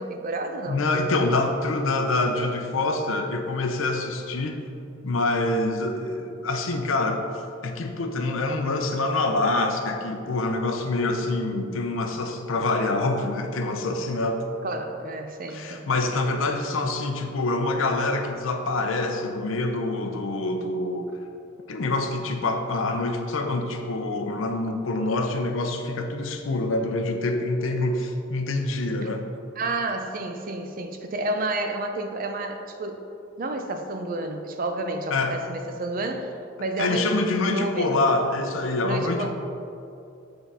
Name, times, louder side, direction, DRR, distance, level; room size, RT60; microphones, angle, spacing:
voice 1, 0.0-0.8 14.6-15.9 29.0-29.1 29.6-33.0 33.4-36.3 36.6-38.1 38.8-39.3, right 2 dB, 45° right, 5 dB, 0.5 m, -30 dB
voice 2, 0.7-4.6 5.0-7.3 7.6-14.5 15.5-21.2 21.7-29.3 35.1-35.4 36.8-39.3, left 2 dB, 85° left, 5 dB, 0.6 m, -26 dB
8.0 x 3.8 x 4.1 m, 2.6 s
head